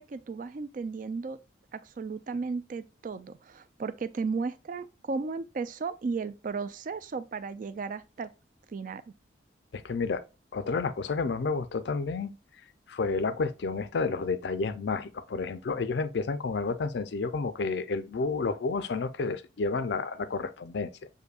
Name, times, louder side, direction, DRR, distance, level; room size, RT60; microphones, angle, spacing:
voice 1, 0.0-1.4 1.7-8.3 8.7-9.0, right 4 dB, 40° right, 0.3 m, -35 dB
voice 2, 9.7-10.2 10.5-12.3 12.9-21.1, left 4 dB, 60° left, 0.4 m, -30 dB
6.6 x 2.6 x 2.3 m
head